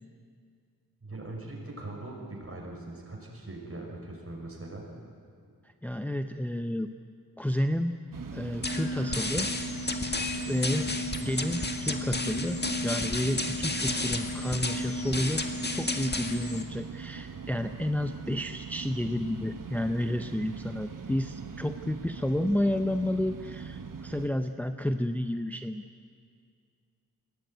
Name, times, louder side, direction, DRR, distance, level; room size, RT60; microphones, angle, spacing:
voice 1, 1.0-4.8, right 2 dB, 40° right, -1 dB, 6.2 m, -41 dB
voice 2, 5.8-6.9 7.4-8.0 8.3-9.5 10.5-10.9 11.2-15.4 15.7-25.8, left 1 dB, 5° left, 7 dB, 0.7 m, -31 dB
sound 1, 8.1-24.3, right 6 dB, 60° right, 1.2 m, -41 dB
sound 2, 8.6-16.6, left 2 dB, 25° left, 1.8 m, -32 dB
21.5 x 17.0 x 9.3 m, 2.2 s
wide cardioid pair, 70°, 37 cm